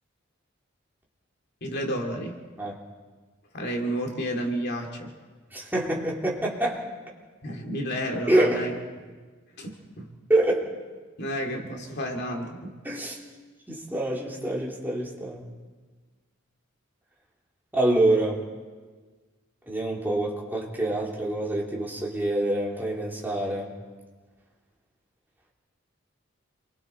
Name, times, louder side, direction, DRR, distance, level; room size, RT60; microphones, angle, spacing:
voice 1, 1.6-2.4 3.5-5.1 7.4-8.7 9.6-10.1 11.2-12.7, equal, 55° left, 2 dB, 2.7 m, -31 dB
voice 2, 5.5-6.8 8.3-8.7 10.3-10.7 12.8-13.2 13.7-15.4 17.7-18.4 19.7-23.7, right 1 dB, 10° right, -3 dB, 3.3 m, -26 dB
28.0 x 23.0 x 4.4 m, 1.4 s
head